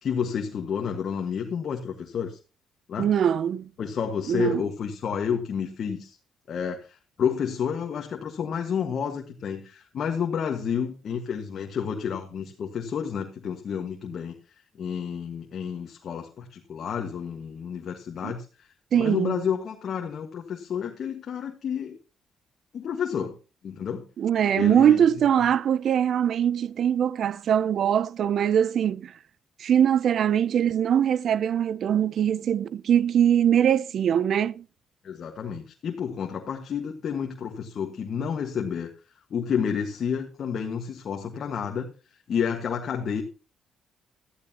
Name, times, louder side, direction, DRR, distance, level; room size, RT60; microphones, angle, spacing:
voice 1, 0.0-2.4 2.9-3.1 3.8-6.2 6.5-14.4 14.7-18.7 18.9-22.0 22.7-23.3 23.6-24.0 24.5-25.0 35.0-38.9 39.3-43.2, left 7 dB, 60° left, 1.6 m, -30 dB
voice 2, 3.0-3.7 4.3-4.6 18.2-18.3 18.9-19.4 24.2-29.1 29.6-34.6, right 9 dB, 65° right, 0.5 m, -22 dB
15.0 x 13.5 x 2.9 m
cardioid pair, 90°, 0 cm